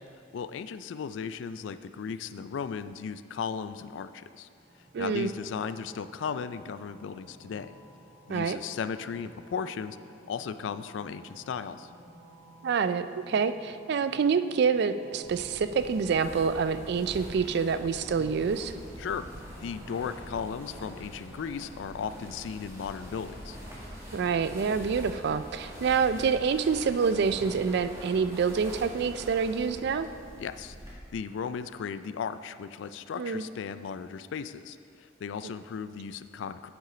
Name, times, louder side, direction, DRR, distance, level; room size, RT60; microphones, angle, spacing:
voice 1, 0.3-4.5 5.0-7.7 8.3-10.0 10.3-11.9 19.0-19.3 19.6-23.6 30.4-34.8 35.2-36.7, left 6 dB, 75° left, 12 dB, 0.3 m, -36 dB
sound 1, 4.6-22.2, right 1 dB, 90° right, 1.7 m, -53 dB
voice 2, 4.9-5.3 8.3-8.6 12.6-18.7 24.1-30.1 33.2-33.4 35.4-35.5, right 6 dB, 60° right, 12 dB, 0.3 m, -27 dB
sound 2, 15.2-30.9, equal, 15° right, 1.7 m, -44 dB
8.3 x 6.2 x 4.9 m, 2.4 s
head